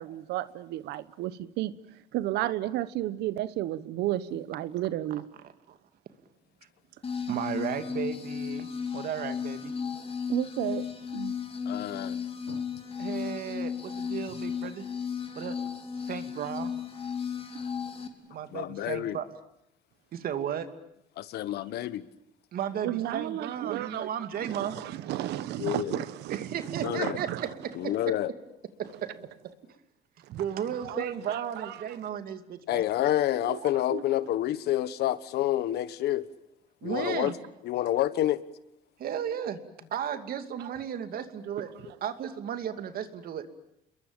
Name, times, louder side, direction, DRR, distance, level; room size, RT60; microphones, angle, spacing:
voice 1, 0.0-1.7 2.1-5.2 10.3-10.8 11.1-11.3 12.5-12.6 22.8-24.1 24.4-27.4 30.3-30.4 30.9-31.0 31.6-31.7 33.4-33.6 33.9-34.0, right 14 dB, 80° right, 1.1 m, -32 dB
voice 2, 5.1-5.8 7.3-8.7 8.9-9.7 13.0-14.9 15.4-15.6 15.9-16.7 18.3-19.3 20.1-20.7 22.5-24.8 26.3-27.3 28.8-29.1 30.3-32.8 36.8-37.3 39.0-39.6 39.9-41.7 42.0-43.5, right 9 dB, 60° right, 2.6 m, -34 dB
sound 1, 7.0-18.1, left 6 dB, 35° left, 3.3 m, -35 dB
voice 3, 11.6-12.2 18.5-19.2 21.2-22.0 25.6-26.0 26.8-27.2 27.7-28.3 32.7-36.3 36.8-37.3 37.6-38.4, left 13 dB, 70° left, 1.3 m, -28 dB
28.5 x 22.0 x 8.9 m
cardioid pair, 110°, 17 cm